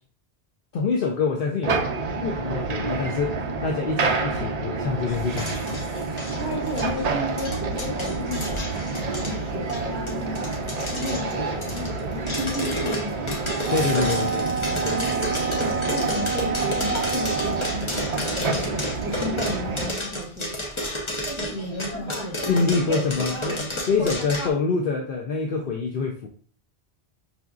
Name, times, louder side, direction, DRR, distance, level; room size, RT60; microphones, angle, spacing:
voice 1, 0.7-5.8 13.7-14.5 22.5-26.3, left 4 dB, 65° left, 0 dB, 0.7 m, -26 dB
sound 1, 1.6-19.9, right 3 dB, 50° right, 0.5 m, -29 dB
sound 2, 5.1-24.5, left 1 dB, 30° left, 0.8 m, -32 dB
voice 2, 6.3-8.6 9.2-10.5 10.9-13.3 13.7-20.8 21.4-23.1 23.6-23.7, left 1 dB, 10° right, -5 dB, 0.8 m, -33 dB
Wind instrument woodwind instrument, 13.6-17.9, right 6 dB, 90° right, 0.8 m, -29 dB
5.7 x 2.6 x 2.3 m, 0.44 s
omnidirectional pair, 1.0 m